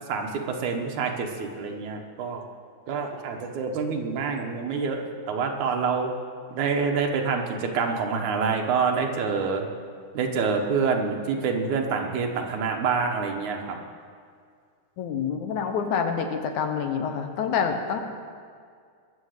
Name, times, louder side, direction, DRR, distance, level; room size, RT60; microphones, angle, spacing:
voice 1, 0.1-2.4 2.9-5.0 5.3-6.1 6.5-9.6 10.1-13.8, right 5 dB, 75° right, 2 dB, 2.6 m, -27 dB
voice 2, 15.0-18.0, left 6 dB, 75° left, 5 dB, 2.4 m, -27 dB
21.0 x 7.1 x 6.6 m, 2.1 s
omnidirectional pair, 3.6 m